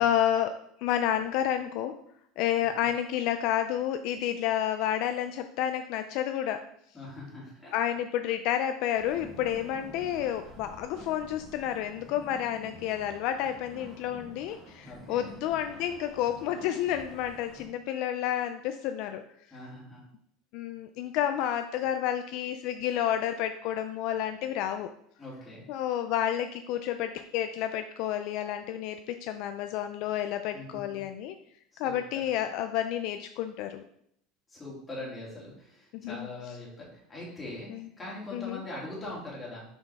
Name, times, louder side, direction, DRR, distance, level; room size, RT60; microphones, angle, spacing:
voice 1, 0.0-2.0 2.4-6.6 7.7-19.2 20.5-24.9 25.7-31.4 31.8-33.8 35.9-36.3 37.7-37.9 38.3-38.6, left 11 dB, 55° left, 8 dB, 0.4 m, -30 dB
voice 2, 6.9-7.7 14.8-15.3 19.5-20.0 25.2-25.6 30.5-31.0 31.7-32.0 34.5-39.7, left 2 dB, 15° left, -6 dB, 2.5 m, -42 dB
sound 1, 8.9-17.6, equal, 15° right, 2.0 m, -49 dB
6.0 x 5.3 x 3.5 m, 0.70 s
cardioid pair, 155°, 0 cm